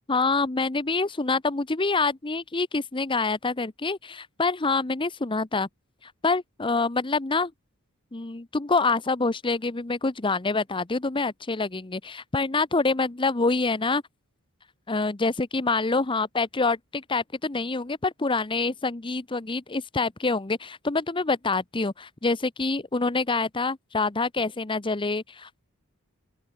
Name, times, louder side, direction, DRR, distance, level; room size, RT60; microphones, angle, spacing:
voice 1, 0.1-5.7 6.0-7.5 8.1-14.0 14.9-25.6, left 3 dB, 25° left, 0.8 m, -26 dB
open air
head